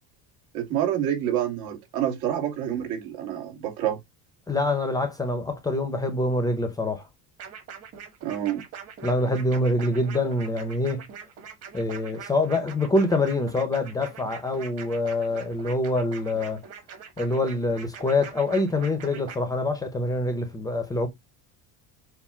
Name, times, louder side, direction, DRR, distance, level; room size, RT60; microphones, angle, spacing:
voice 1, 0.5-4.0 8.2-8.6, right 10 dB, 70° right, 2.3 m, -27 dB
voice 2, 4.5-7.1 9.0-11.0 11.7-16.6 17.2-21.1, left 2 dB, 10° left, 0.7 m, -25 dB
sound 1, 7.4-19.4, right 7 dB, 40° right, 1.8 m, -43 dB
7.3 x 2.5 x 5.6 m
cardioid pair, 180°, 37 cm